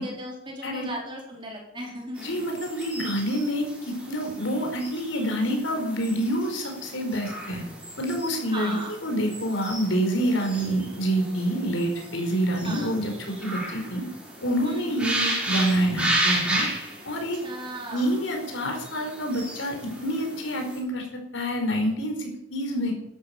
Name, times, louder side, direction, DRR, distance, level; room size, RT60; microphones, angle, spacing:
voice 1, 0.0-2.4 8.5-8.9 12.6-13.0 14.6-14.9 17.1-18.1, right 1 dB, 25° right, -1 dB, 4.6 m, -37 dB
voice 2, 2.2-7.6 8.0-14.0 14.4-16.7 17.0-17.4 17.9-21.0 21.3-22.9, equal, 75° left, 3 dB, 4.7 m, -27 dB
sound 1, 2.2-20.8, right 1 dB, 5° right, 6.1 m, -34 dB
12.5 x 12.0 x 7.0 m, 0.80 s
head